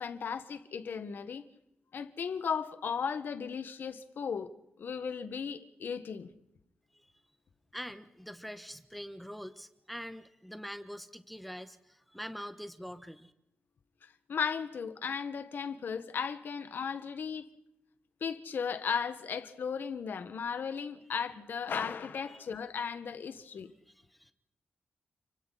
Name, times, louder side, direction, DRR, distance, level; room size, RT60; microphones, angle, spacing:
voice 1, 0.0-1.4 1.9-6.3 14.0-17.4 18.2-23.7, left 6 dB, 75° left, 1.7 m, -36 dB
voice 2, 7.7-13.3 22.3-22.5 23.9-24.3, equal, ahead, 1.3 m, -44 dB
30.0 x 25.0 x 4.3 m
wide cardioid pair, 95°, 3 cm